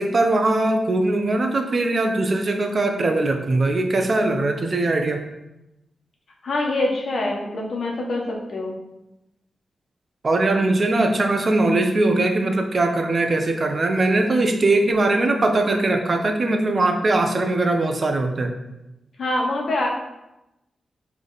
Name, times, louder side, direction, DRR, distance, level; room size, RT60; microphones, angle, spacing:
voice 1, 0.0-5.2 10.2-18.5, right 2 dB, 45° right, 4 dB, 0.8 m, -21 dB
voice 2, 6.4-8.8 19.2-19.9, left 2 dB, 65° left, -1 dB, 1.4 m, -25 dB
6.8 x 3.5 x 4.1 m, 0.93 s
wide cardioid pair, 90°, 0 cm